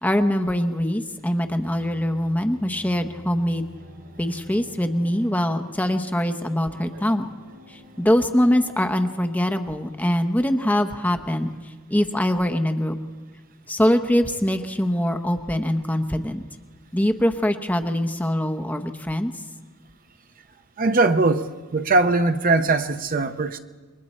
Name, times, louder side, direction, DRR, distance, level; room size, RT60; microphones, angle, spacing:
voice 1, 0.0-3.6 4.2-7.3 7.7-11.5 11.9-13.0 13.7-16.4 16.9-19.3, equal, 10° left, 7 dB, 0.9 m, -23 dB
sound 1, 1.3-9.6, left 1 dB, 80° right, 6.6 m, -48 dB
voice 2, 20.8-23.6, right 3 dB, 40° right, 8 dB, 0.7 m, -20 dB
28.0 x 22.5 x 4.3 m, 1.4 s
head